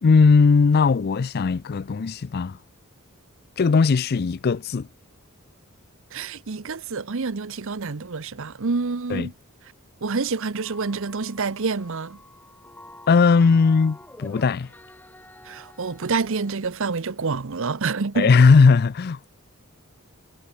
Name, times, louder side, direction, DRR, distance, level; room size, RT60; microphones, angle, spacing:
voice 1, 0.0-2.6 3.6-4.9 9.1-9.3 13.1-14.7 18.2-19.3, left 4 dB, 45° left, 0.4 m, -18 dB
voice 2, 6.1-9.3 10.0-12.2 15.4-18.3, right 4 dB, 60° right, 0.8 m, -27 dB
sound 1, 10.5-16.5, left 1 dB, 10° left, 3.6 m, -48 dB
head